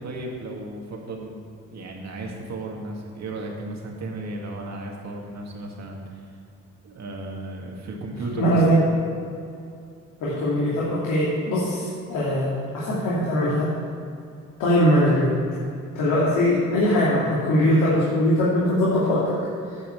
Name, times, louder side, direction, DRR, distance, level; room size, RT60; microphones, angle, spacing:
voice 1, 0.0-1.4 1.7-6.2 6.8-8.6, right 2 dB, 60° right, 0 dB, 2.1 m, -34 dB
voice 2, 8.4-8.8 10.2-13.7 14.6-15.4 15.9-19.4, equal, 80° left, -8 dB, 2.5 m, -21 dB
10.0 x 5.7 x 7.2 m, 2.5 s
cardioid pair, 90°, 30 cm